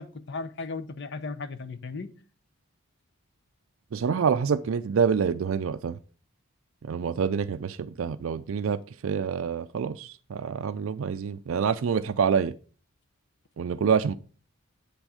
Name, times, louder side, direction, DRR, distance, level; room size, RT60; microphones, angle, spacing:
voice 1, 0.0-2.1, left 3 dB, 55° left, 0.7 m, -36 dB
voice 2, 3.9-6.0 6.8-12.5 13.6-14.1, right 6 dB, 65° right, 0.4 m, -27 dB
8.4 x 6.2 x 4.9 m
head